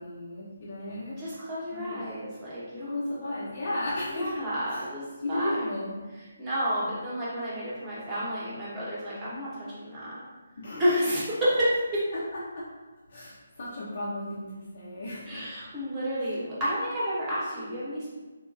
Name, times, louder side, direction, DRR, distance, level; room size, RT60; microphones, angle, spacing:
voice 1, 0.0-1.2 1.7-2.1 2.7-4.3 4.7-4.9 5.2-6.1 10.6-11.2 12.1-12.7 13.1-15.5 16.2-16.3, left 1 dB, 45° left, -8 dB, 0.7 m, -35 dB
voice 2, 1.2-3.2 4.1-5.0 5.3-5.5 6.4-10.2 10.8-11.7 15.3-18.1, equal, 15° right, -9 dB, 1.0 m, -30 dB
4.2 x 2.2 x 2.5 m, 1.2 s
figure-of-eight pair, 145°, 0 cm